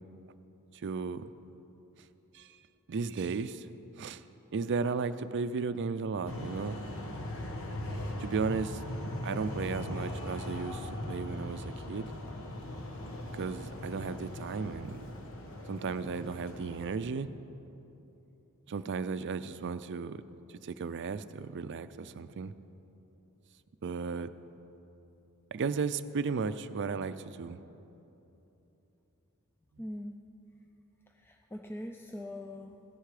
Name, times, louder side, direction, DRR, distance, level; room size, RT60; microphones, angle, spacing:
voice 1, 0.8-1.3 2.3-2.6 2.9-3.7 4.0-4.2 4.5-6.8 8.2-8.8 9.2-12.1 13.3-15.0 15.7-17.3 18.7-20.2 20.6-22.5 23.8-24.3 25.5-27.6, right 5 dB, 55° right, 13 dB, 0.4 m, -35 dB
sound 1, 6.3-17.0, left 1 dB, 65° left, 1.3 m, -39 dB
voice 2, 29.8-30.1 31.1-32.8, left 1 dB, 10° left, 4 dB, 0.4 m, -42 dB
16.5 x 10.0 x 4.9 m, 3.0 s
head